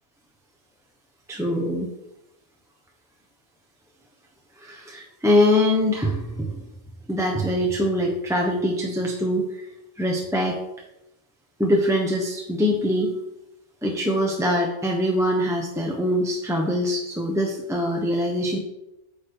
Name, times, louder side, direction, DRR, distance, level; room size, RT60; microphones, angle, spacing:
voice 1, 1.3-1.9 4.6-6.6 7.1-9.7 10.0-10.6 11.6-13.1 13.8-18.6, left 1 dB, 5° right, -1 dB, 1.1 m, -23 dB
9.4 x 6.8 x 4.8 m, 0.90 s
omnidirectional pair, 1.1 m